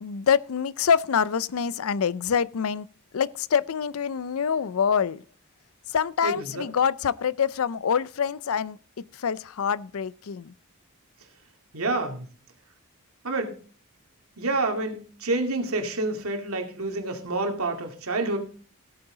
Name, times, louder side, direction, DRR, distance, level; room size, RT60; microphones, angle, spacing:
voice 1, 0.0-2.9 3.1-5.2 5.9-10.5, left 7 dB, 75° left, 0.5 m, -26 dB
voice 2, 6.2-6.7 11.7-12.2 13.2-13.5 14.4-18.4, right 2 dB, 85° right, 2.4 m, -28 dB
16.0 x 8.7 x 3.9 m
head